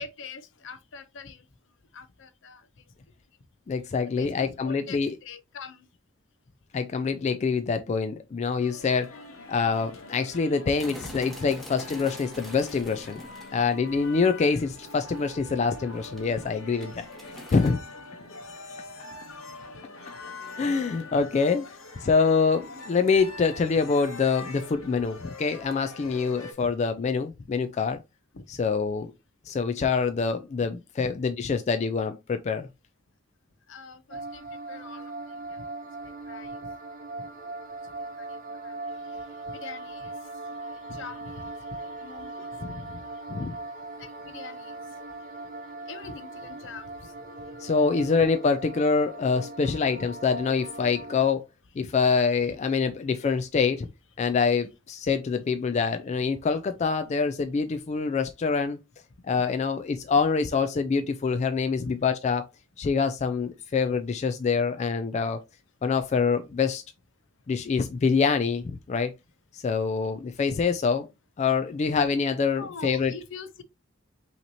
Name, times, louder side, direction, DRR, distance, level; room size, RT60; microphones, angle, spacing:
voice 1, 0.0-1.5 1.9-2.7 4.2-5.9 28.3-28.4 29.7-29.9 31.0-31.1 33.7-35.6 36.0-36.7 37.2-37.5 38.2-38.7 39.1-40.1 40.7-42.8 44.0-44.8 45.9-47.1 48.0-48.1 59.3-59.4 61.3-61.4 61.7-61.9 67.9-68.0 72.5-73.6, left 4 dB, 65° left, 0.6 m, -44 dB
voice 2, 3.7-5.2 6.7-9.1 9.5-13.2 13.5-17.8 20.6-21.6 22.0-28.0 28.5-29.1 29.5-32.7 42.6-43.0 43.3-43.6 47.6-51.4 51.8-53.9 54.2-58.8 59.3-62.5 62.8-65.4 65.8-66.8 67.5-69.1 69.5-71.1 71.4-73.1, left 5 dB, 35° left, 0.3 m, -25 dB
sound 1, 8.6-26.5, left 2 dB, 80° left, 1.0 m, -44 dB
sound 2, 10.8-14.2 14.6-14.8 15.3-15.8 16.1-17.7, equal, ahead, 1.1 m, -44 dB
sound 3, 34.1-51.3, right 2 dB, 40° right, 0.7 m, -39 dB
5.6 x 3.0 x 2.7 m
head